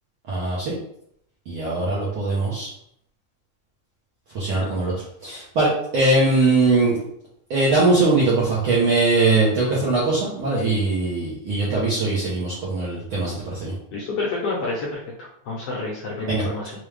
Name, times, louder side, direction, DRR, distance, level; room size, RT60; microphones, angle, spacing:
voice 1, 0.3-0.7 1.5-2.7 4.3-7.0 7.5-13.7 16.2-16.4, right 3 dB, 65° right, -7 dB, 1.4 m, -21 dB
voice 2, 13.9-16.7, left 3 dB, 65° left, -4 dB, 1.5 m, -29 dB
5.1 x 2.3 x 3.2 m, 0.71 s
omnidirectional pair, 3.3 m